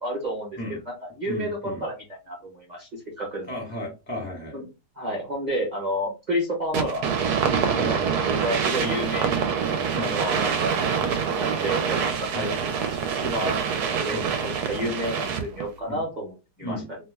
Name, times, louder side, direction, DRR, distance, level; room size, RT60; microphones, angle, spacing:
voice 1, 0.0-3.5 4.5-4.7 5.0-7.1 7.7-9.3 9.9-12.5 12.9-17.0, equal, 30° right, -2 dB, 0.9 m, -31 dB
voice 2, 1.3-1.8 3.5-4.6 7.7-7.9 8.8-9.0 9.9-10.1 12.3-12.5 14.1-14.3 14.8-15.0 15.9-16.0 16.6-16.9, left 1 dB, 10° left, -1 dB, 0.7 m, -34 dB
sound 1, 6.7-15.6, right 6 dB, 70° right, 1.1 m, -25 dB
2.9 x 2.1 x 3.3 m, 0.26 s
omnidirectional pair, 1.9 m